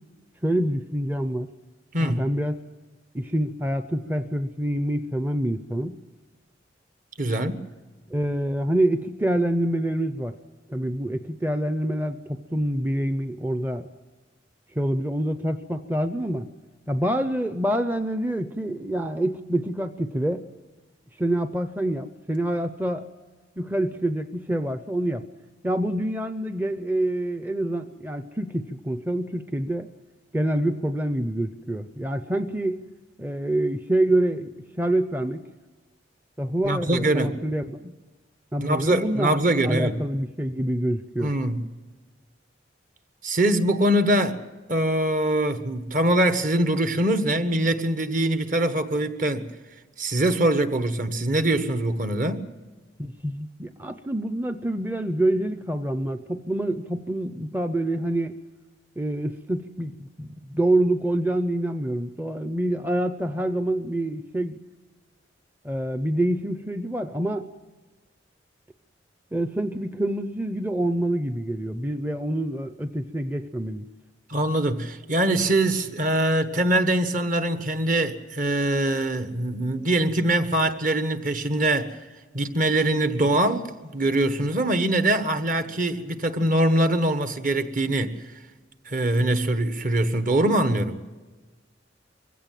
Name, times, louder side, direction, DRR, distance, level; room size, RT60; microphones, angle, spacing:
voice 1, 0.4-1.5 2.0-2.6 3.1-6.0 8.1-10.4 10.7-13.9 14.7-16.5 16.9-20.4 21.2-23.1 23.6-25.2 25.6-29.9 30.3-32.8 33.2-35.4 36.4-37.8 38.5-39.4 39.6-41.3 53.0-58.4 59.0-64.6 65.6-67.5 69.3-73.9, right 1 dB, 10° right, 0.6 m, -26 dB
voice 2, 1.9-2.2 7.2-7.6 36.6-37.4 38.6-40.0 41.2-41.6 43.2-44.4 44.7-49.5 50.0-52.5 74.3-82.0 82.3-88.2 88.9-91.0, right 1 dB, 45° right, 1.3 m, -23 dB
23.0 x 16.0 x 7.6 m
head